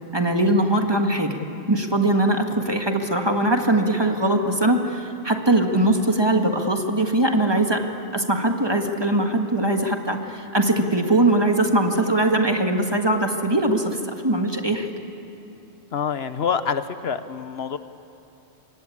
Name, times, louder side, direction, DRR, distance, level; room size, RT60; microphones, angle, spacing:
voice 1, 0.1-1.4 1.7-7.8 8.1-14.9, right 1 dB, 25° right, 4 dB, 1.8 m, -21 dB
voice 2, 15.9-17.8, left 6 dB, 70° left, 11 dB, 1.1 m, -26 dB
27.0 x 23.5 x 8.6 m, 2.8 s
omnidirectional pair, 1.1 m